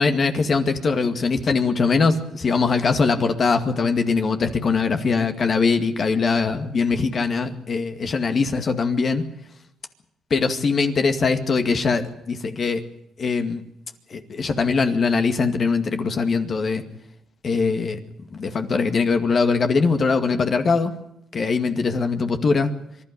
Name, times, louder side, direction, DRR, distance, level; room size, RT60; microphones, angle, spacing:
voice 1, 0.0-9.2 10.3-12.8 13.2-13.6 14.1-16.8 17.4-18.0 18.3-20.9 21.3-22.7, left 4 dB, 45° left, 7 dB, 2.2 m, -21 dB
25.5 x 12.0 x 10.0 m, 0.82 s
cardioid pair, 90°, 0 cm